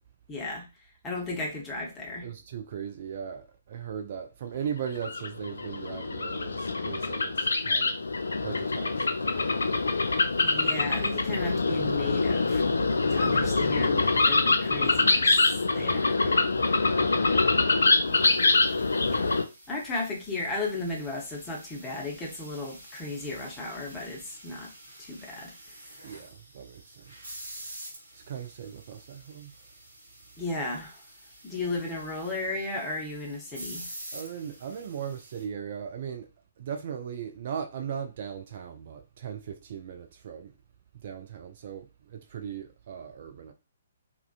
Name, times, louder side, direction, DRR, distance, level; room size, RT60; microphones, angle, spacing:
voice 1, 0.3-0.6 1.0-2.3 10.4-12.6 13.1-15.3 15.7-16.1 17.2-18.4 19.1-19.3 19.7-24.7 25.0-25.5 30.4-31.0 31.4-33.9, left 2 dB, 15° left, 0.7 m, -35 dB
voice 2, 2.2-8.0 8.4-9.1 13.2-14.2 15.8-17.1 26.0-27.3 28.1-29.5 34.1-36.3 36.6-40.5 40.9-43.5, right 8 dB, 45° right, 0.3 m, -38 dB
sound 1, 4.9-19.4, left 3 dB, 70° left, 0.3 m, -25 dB
sound 2, 18.0-35.4, right 1 dB, 65° right, 0.9 m, -48 dB
2.4 x 2.2 x 2.4 m
figure-of-eight pair, 130°, 0 cm